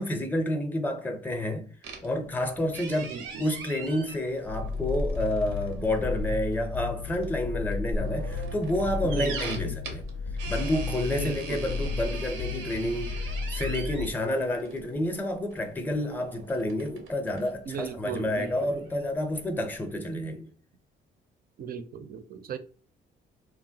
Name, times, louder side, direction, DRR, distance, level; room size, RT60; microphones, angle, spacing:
voice 1, 0.0-1.7 2.0-10.0 10.5-20.5, left 1 dB, 10° left, 0.5 m, -29 dB
sound 1, 1.8-20.0, right 3 dB, 90° right, 0.7 m, -41 dB
voice 2, 3.0-3.5 9.2-9.9 11.2-11.6 17.7-18.7 20.0-20.1 21.6-22.6, right 6 dB, 50° right, 0.4 m, -37 dB
sound 2, 4.4-14.1, left 4 dB, 70° left, 0.4 m, -33 dB
2.8 x 2.1 x 2.7 m
cardioid pair, 90°, 20 cm